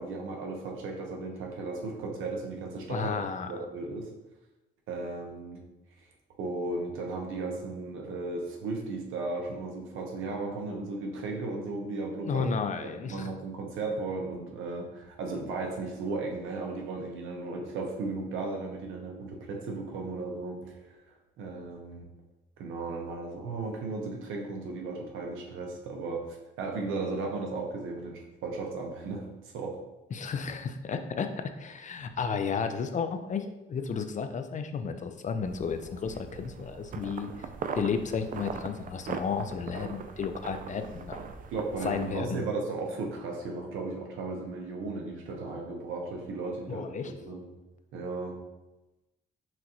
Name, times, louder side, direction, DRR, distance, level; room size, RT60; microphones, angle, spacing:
voice 1, 0.0-3.2 3.5-4.1 4.9-5.6 6.4-12.5 12.8-20.8 21.4-22.1 22.6-29.3 29.5-29.8 41.5-46.9 47.2-47.5 47.9-48.4, right 3 dB, 90° right, 1 dB, 0.9 m, -35 dB
voice 2, 2.9-3.5 12.2-13.3 30.1-37.3 37.7-41.3 41.8-42.4 46.7-47.1, left 6 dB, 40° left, 8 dB, 0.4 m, -33 dB
sound 1, 35.5-42.2, right 6 dB, 45° right, 0.4 m, -40 dB
5.9 x 2.5 x 3.0 m, 1.0 s
cardioid pair, 90°, 20 cm